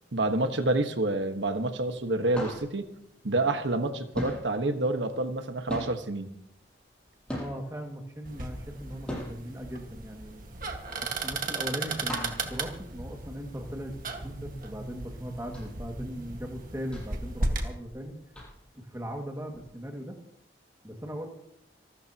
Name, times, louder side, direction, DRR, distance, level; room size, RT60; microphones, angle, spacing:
voice 1, 0.1-2.9 3.2-6.3, right 2 dB, 85° right, 6 dB, 1.5 m, -28 dB
sound 1, 1.3-1.7 1.9-3.9 4.1-7.9 8.3-13.6 14.0-14.1 14.4-14.7 15.2-18.0 18.3-18.8 19.5-19.6, equal, 5° left, 7.7 m, -39 dB
voice 2, 7.4-10.4 11.2-13.9 14.2-18.1 18.7-20.2 20.8-21.3, equal, 15° right, 1 dB, 2.2 m, -39 dB
sound 2, 8.2-17.7, right 2 dB, 50° right, 1.8 m, -36 dB
26.5 x 13.5 x 3.0 m, 0.74 s
head